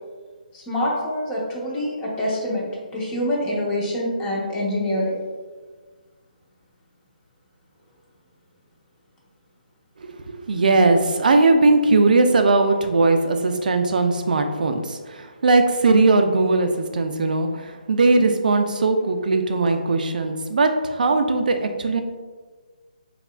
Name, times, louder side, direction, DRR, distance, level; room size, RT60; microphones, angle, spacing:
voice 1, 0.5-5.2, left 1 dB, 15° left, -5 dB, 0.9 m, -25 dB
voice 2, 10.0-22.0, right 3 dB, 65° right, 6 dB, 0.4 m, -19 dB
5.3 x 2.4 x 2.2 m, 1.4 s
figure-of-eight pair, 145°, 5 cm